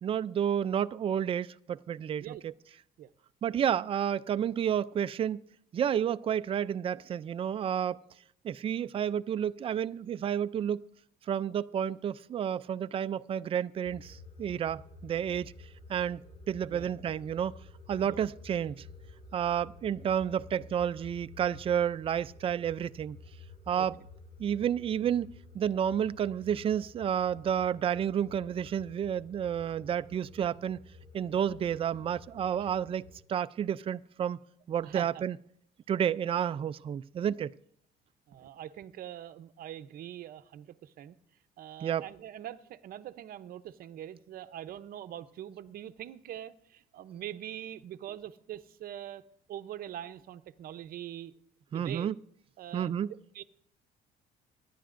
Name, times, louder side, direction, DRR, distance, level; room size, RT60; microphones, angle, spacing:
voice 1, 0.0-2.5 3.4-5.4 5.7-8.0 8.4-10.8 11.3-15.5 15.9-16.2 16.5-17.5 17.9-18.8 19.3-23.2 23.7-24.0 24.4-30.8 31.1-33.0 33.3-34.4 34.7-35.4 35.9-37.5 41.8-42.0 51.7-52.2 52.7-53.1, right 9 dB, 35° right, 0.4 m, -30 dB
sound 1, 13.8-33.2, left 3 dB, 35° left, 5.4 m, -51 dB
voice 2, 34.8-35.2 38.3-41.2 41.6-49.2 49.5-51.3 51.7-52.1 52.6-53.4, right 11 dB, 60° right, 0.7 m, -43 dB
24.5 x 10.5 x 2.5 m
cardioid pair, 110°, 17 cm